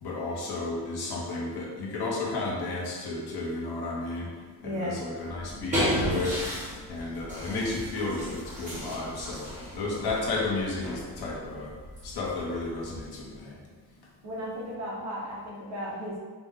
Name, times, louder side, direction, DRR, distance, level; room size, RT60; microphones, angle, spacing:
voice 1, 0.0-4.3 4.6-6.4 6.9-9.5 9.7-11.7 12.0-13.6, left 2 dB, 70° left, -3 dB, 1.0 m, -32 dB
voice 2, 4.6-5.0 9.7-9.8 14.2-16.2, equal, 40° right, -6 dB, 1.2 m, -35 dB
sound 1, 5.2-13.3, equal, 20° right, 1.4 m, -34 dB
4.9 x 2.2 x 3.6 m, 1.4 s
cardioid pair, 175°, 40 cm